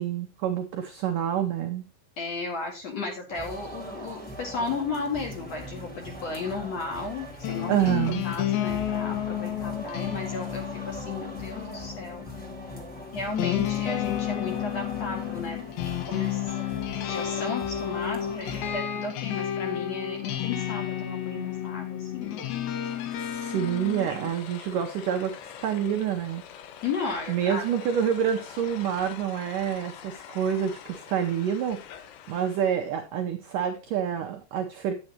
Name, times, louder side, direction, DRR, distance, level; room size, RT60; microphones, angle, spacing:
voice 1, 0.0-1.8 7.7-8.3 23.2-26.4 27.3-31.8 32.3-34.9, right 9 dB, 85° right, 4 dB, 1.8 m, -27 dB
voice 2, 2.2-12.3 13.1-15.6 15.9-16.5 17.0-22.5 24.1-24.3 26.8-27.6, left 4 dB, 50° left, 2 dB, 2.5 m, -34 dB
sound 1, 3.3-18.7, right 1 dB, 5° left, 1.2 m, -41 dB
sound 2, 4.9-24.1, left 11 dB, 70° left, 2.7 m, -32 dB
sound 3, 22.6-32.9, left 9 dB, 85° left, 3.4 m, -45 dB
9.7 x 9.6 x 2.9 m, 0.31 s
omnidirectional pair, 5.1 m